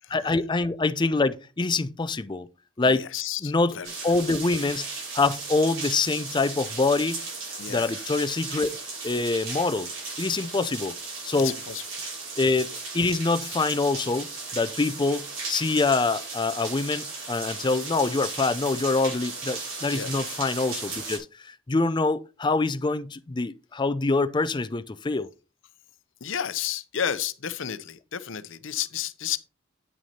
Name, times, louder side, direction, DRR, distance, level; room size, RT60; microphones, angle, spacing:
voice 1, 0.1-2.5 2.8-3.1 3.4-3.7 4.0-4.9 5.1-7.2 7.7-8.8 9.0-9.9 10.2-10.9 11.2-11.5 12.4-25.3, left 3 dB, 20° left, 0.5 m, -25 dB
voice 2, 2.8-3.9 7.6-8.1 11.4-12.1 19.9-20.1 26.2-29.4, left 9 dB, 70° left, 0.7 m, -32 dB
sound 1, 3.8-21.2, right 4 dB, 80° right, 5.4 m, -36 dB
9.4 x 6.1 x 4.3 m
head